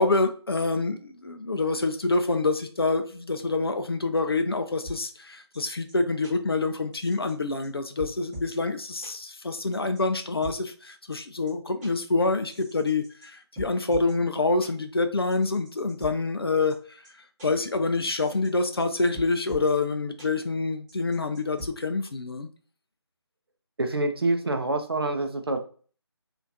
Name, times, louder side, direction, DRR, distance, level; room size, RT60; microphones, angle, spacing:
voice 1, 0.0-17.0 17.4-22.5, left 3 dB, 60° left, 8 dB, 0.4 m, -26 dB
sound 1, 4.8-5.0 5.5-5.6 5.9-6.0 6.2-6.3 6.9-7.3 7.6-7.7 8.0-8.5 9.0-9.1 9.7-10.5 11.1-11.2 11.5-11.6 11.8-11.9 12.5-13.3 13.6-14.1 14.6-14.7 15.3-16.1 16.7-16.8 17.0-17.1 17.4-17.5 18.1-18.5 18.8-18.9 19.1-19.7 20.2-20.3 20.9-21.7, right 1 dB, 10° right, 1.0 m, -40 dB
voice 2, 23.8-25.6, right 2 dB, 60° right, 6 dB, 0.5 m, -26 dB
3.0 x 2.5 x 2.5 m, 0.41 s
figure-of-eight pair, 155°, 14 cm